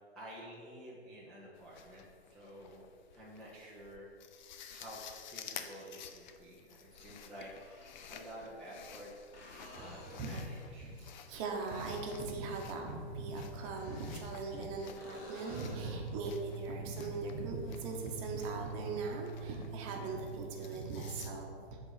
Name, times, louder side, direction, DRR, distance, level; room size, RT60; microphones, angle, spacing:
voice 1, 0.1-2.9 3.1-4.1 4.7-7.5 8.1-9.1 9.7-10.9, equal, ahead, -10 dB, 0.5 m, -50 dB
sound 1, 1.5-21.3, left 7 dB, 45° left, 0.6 m, -53 dB
sound 2, 7.5-8.3 9.3-10.5 13.6-14.7 15.0-16.0 19.7-19.8, left 1 dB, 25° left, 1.4 m, -52 dB
voice 2, 10.1-10.5 10.8-21.8, right 3 dB, 25° right, 1 dB, 1.0 m, -40 dB
sound 3, 15.5-21.3, right 5 dB, 65° right, 0.7 m, -45 dB
7.8 x 3.9 x 5.6 m, 2.2 s
hypercardioid pair, 145°, 33 cm